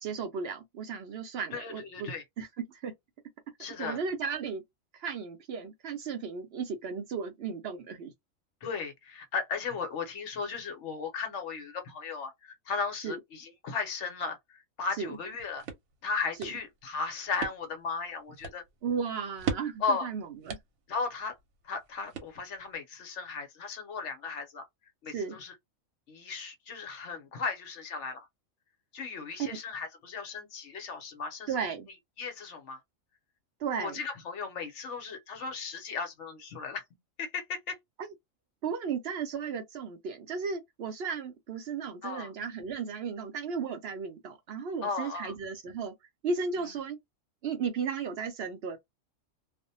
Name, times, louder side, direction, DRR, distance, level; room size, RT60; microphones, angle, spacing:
voice 1, 0.0-2.1 2.4-2.9 3.8-4.6 4.9-8.1 13.0-13.2 15.0-15.2 16.4-16.5 18.8-20.6 25.1-25.4 29.4-29.6 31.5-31.9 33.6-34.0 38.0-38.1 38.6-45.9 46.2-47.0 47.4-48.8, right 5 dB, 65° right, 0.7 m, -35 dB
voice 2, 1.5-2.2 3.6-4.0 8.6-15.6 16.0-18.6 19.8-20.1 20.9-21.3 21.6-24.7 25.0-25.5 26.1-28.2 28.9-31.6 32.2-32.8 33.8-36.8 37.2-37.8 42.0-42.3 44.8-45.3, left 4 dB, 65° left, 1.0 m, -36 dB
sound 1, 15.1-22.8, right 6 dB, 80° right, 1.1 m, -42 dB
2.5 x 2.0 x 2.7 m
omnidirectional pair, 1.4 m